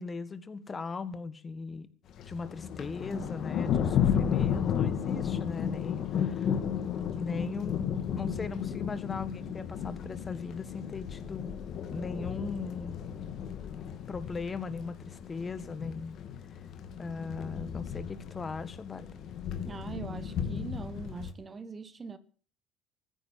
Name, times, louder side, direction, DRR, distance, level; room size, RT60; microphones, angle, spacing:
voice 1, 0.0-1.9 2.3-6.9 7.1-11.5 11.9-13.0 14.1-16.2 17.0-19.1, left 4 dB, 30° left, 1.7 m, -38 dB
Thunder, 2.1-21.3, left 8 dB, 55° left, 2.2 m, -33 dB
voice 2, 19.7-22.2, right 5 dB, 30° right, 1.2 m, -42 dB
14.5 x 10.0 x 7.5 m
supercardioid pair, 95°, 0 cm